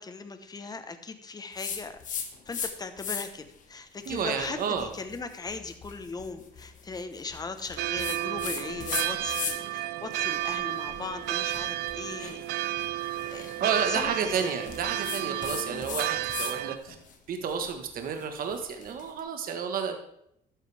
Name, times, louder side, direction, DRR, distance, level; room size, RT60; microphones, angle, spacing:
voice 1, 0.0-2.0 2.5-12.4 13.3-13.5 13.9-14.5 15.4-15.5, left 4 dB, 25° left, 8 dB, 1.1 m, -39 dB
sound 1, 1.6-2.7 3.0-3.5 4.0-9.8 10.1-16.6 16.9-19.1, left 6 dB, 50° left, 1.6 m, -38 dB
voice 2, 4.1-4.9 13.6-16.9 17.3-20.0, right 6 dB, 60° right, 5 dB, 1.4 m, -31 dB
sound 2, 7.8-16.8, right 15 dB, 75° right, 0.5 m, -32 dB
12.0 x 9.3 x 3.4 m, 0.75 s
cardioid pair, 110°, 17 cm